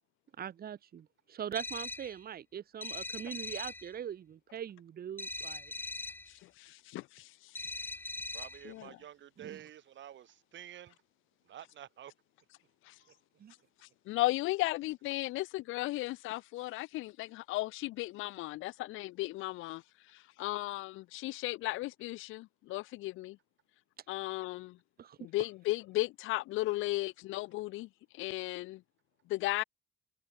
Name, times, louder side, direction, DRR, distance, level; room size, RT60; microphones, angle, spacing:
voice 1, 0.4-5.7 9.4-9.6 13.4-13.5 25.0-25.2, right 9 dB, 50° right, 1.0 m, -42 dB
sound 1, 1.5-2.2 2.8-3.9 5.2-6.3 7.5-8.7, left 2 dB, 10° left, 0.5 m, -41 dB
voice 2, 6.6-7.3 8.6-8.9 12.9-13.0 14.1-19.8 20.4-23.4 24.1-24.8 25.2-27.9 28.1-28.8 29.3-29.6, left 18 dB, 85° left, 0.4 m, -35 dB
voice 3, 8.3-11.0 11.4-12.1 13.0-13.2, right 11 dB, 70° right, 2.2 m, -50 dB
cardioid pair, 90°, 20 cm